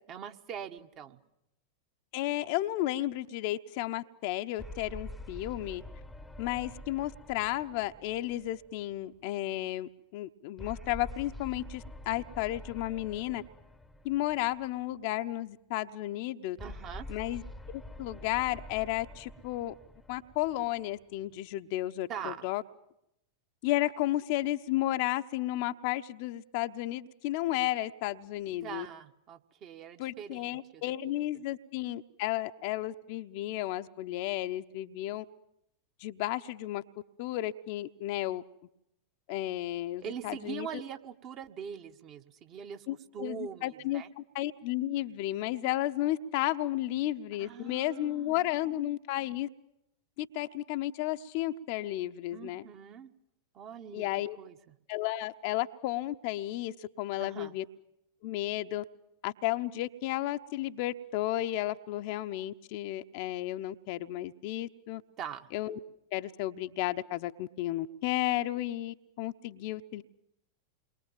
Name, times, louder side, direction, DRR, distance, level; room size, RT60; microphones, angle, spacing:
voice 1, 0.1-1.2 16.6-17.1 22.1-22.5 28.6-30.8 40.0-42.9 43.1-44.1 47.4-48.6 52.3-53.1 53.5-54.1 54.4-54.7 57.2-57.5 65.2-65.5, right 8 dB, 35° right, 6 dB, 1.5 m, -42 dB
voice 2, 2.1-5.8 6.4-13.4 14.0-16.6 17.1-17.4 17.7-19.7 20.1-22.6 23.6-28.9 30.0-35.2 36.0-36.8 37.2-38.4 39.3-40.8 42.9-49.5 50.2-52.6 53.9-54.4 54.9-57.6 58.2-58.8 59.2-65.0 65.5-65.8 66.1-70.0, left 15 dB, 45° left, 8 dB, 0.9 m, -33 dB
sound 1, 4.6-9.2 10.6-15.0 16.6-21.1, left 1 dB, 5° left, 1.1 m, -47 dB
29.0 x 22.5 x 7.4 m, 0.82 s
figure-of-eight pair, 90°, 0 cm